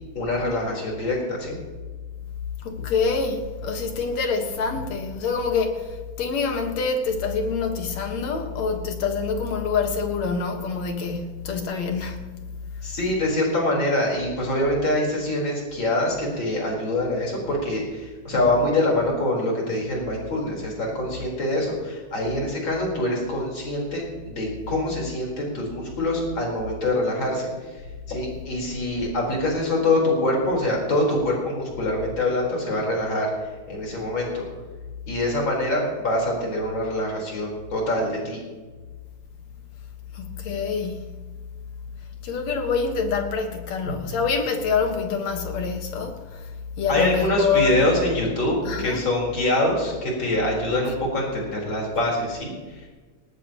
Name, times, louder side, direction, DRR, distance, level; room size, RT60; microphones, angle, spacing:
voice 1, 0.1-1.5 12.8-27.5 28.1-33.3 33.7-34.4 35.1-38.4 43.9-44.0 46.9-52.9, left 1 dB, 40° left, 5.0 m, -24 dB
voice 2, 2.6-12.2 12.7-12.9 40.1-41.1 42.2-47.8 48.6-49.1, left 5 dB, 65° left, 2.7 m, -26 dB
19.0 x 18.5 x 3.0 m
omnidirectional pair, 3.4 m